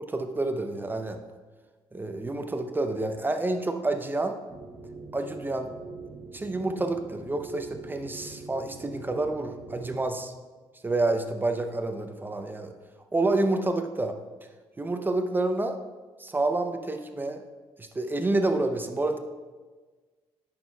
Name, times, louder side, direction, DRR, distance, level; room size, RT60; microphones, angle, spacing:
voice 1, 0.1-1.2 1.9-4.3 5.1-5.7 6.3-10.3 10.8-12.7 13.1-14.1 14.8-15.8 16.2-17.4 17.8-19.2, right 2 dB, 20° right, 6 dB, 0.5 m, -28 dB
sound 1, 4.5-10.0, right 4 dB, 35° right, 2.0 m, -43 dB
9.2 x 6.2 x 2.3 m, 1.3 s
cardioid pair, 100°, 11 cm